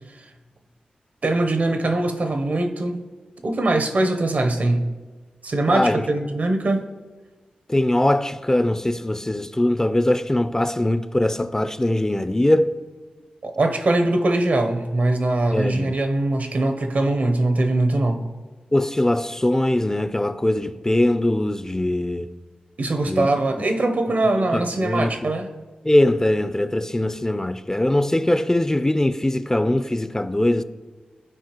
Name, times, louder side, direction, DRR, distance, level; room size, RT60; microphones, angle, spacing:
voice 1, 1.2-3.1 3.4-4.9 5.4-6.9 13.4-18.3 22.8-25.5, right 2 dB, 65° right, 0.8 m, -22 dB
voice 2, 5.7-6.0 7.7-12.7 15.5-15.9 18.7-22.3 23.0-23.3 24.5-25.3 25.8-30.6, left 1 dB, 20° left, 0.4 m, -21 dB
13.0 x 4.5 x 3.0 m
cardioid pair, 40°, 3 cm